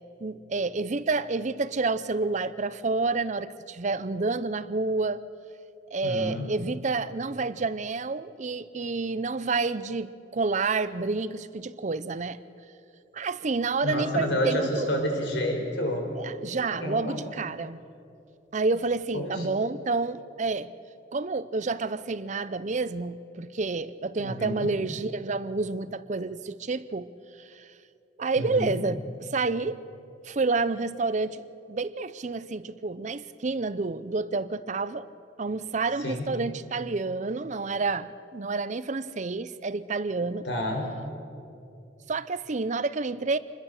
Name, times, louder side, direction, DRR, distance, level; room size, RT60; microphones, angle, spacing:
voice 1, 0.2-5.2 5.9-12.4 13.1-14.9 16.2-17.8 18.5-20.7 21.1-27.1 27.6-27.7 28.2-29.8 30.2-31.4 31.7-35.1 35.4-40.5 42.1-43.4, right 3 dB, 40° right, 15 dB, 0.6 m, -29 dB
voice 2, 6.0-6.5 13.8-16.1 16.7-17.2 19.1-19.5 24.2-24.7 28.4-28.7 36.0-36.3 40.4-40.9, left 1 dB, 80° left, 2 dB, 4.4 m, -29 dB
26.0 x 20.5 x 6.6 m, 2.6 s
head